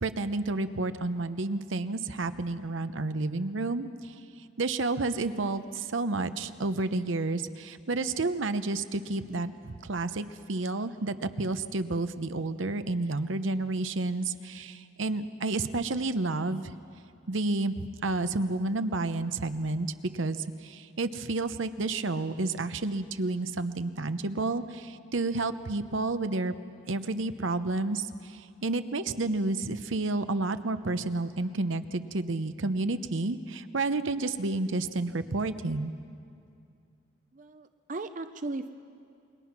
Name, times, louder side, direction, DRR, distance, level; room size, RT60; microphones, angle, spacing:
voice 1, 0.0-16.7 17.3-26.5 26.9-35.9, right 2 dB, 75° right, 11 dB, 0.8 m, -30 dB
voice 2, 37.3-38.7, right 2 dB, 40° right, 10 dB, 0.6 m, -37 dB
28.0 x 22.0 x 6.0 m, 2.4 s
head